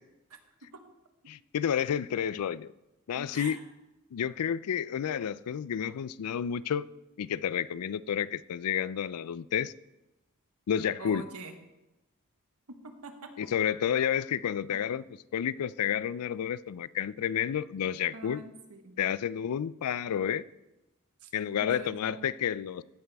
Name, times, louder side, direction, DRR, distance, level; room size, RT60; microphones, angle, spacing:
voice 1, 1.3-2.7 3.1-3.6 4.1-6.9 7.2-9.7 10.7-11.2 13.4-15.0 15.3-18.4 19.0-20.4 21.3-22.8, left 9 dB, 85° left, 0.4 m, -30 dB
voice 2, 3.1-3.6 11.0-11.6 12.7-13.3 14.7-14.8 18.1-19.0 21.2-21.3 21.6-22.3, right 3 dB, 85° right, 1.3 m, -45 dB
15.0 x 8.8 x 3.5 m
head